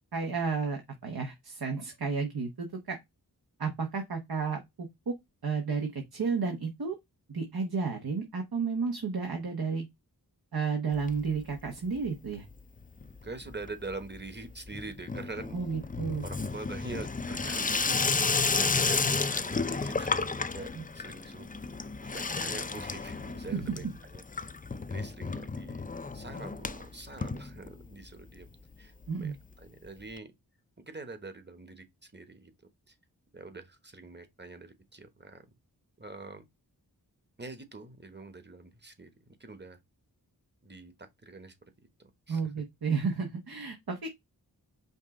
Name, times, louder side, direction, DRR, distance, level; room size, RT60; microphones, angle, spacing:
voice 1, 0.1-3.0 3.6-5.1 5.4-7.0 7.3-9.8 10.5-12.4 15.5-16.2 20.7-20.8 23.6-23.8 29.1-29.4 42.3-44.1, right 5 dB, 65° right, 1.1 m, -32 dB
Water tap faucet / Sink (filling or washing), 10.9-11.7 12.0-12.5 12.8-28.1 28.4-28.5 28.7-28.8 29.0-29.1 30.2-30.3, left 4 dB, 20° left, 0.4 m, -32 dB
voice 2, 13.2-15.6 16.2-21.5 22.0-24.2 24.9-28.9 29.2-30.3 30.8-32.5 32.9-33.0 33.3-35.4 36.0-36.5 37.4-39.1 39.4-39.8 40.6-41.6 42.3-42.5, right 3 dB, 25° right, 1.2 m, -44 dB
5.3 x 2.5 x 3.7 m
cardioid pair, 40°, 39 cm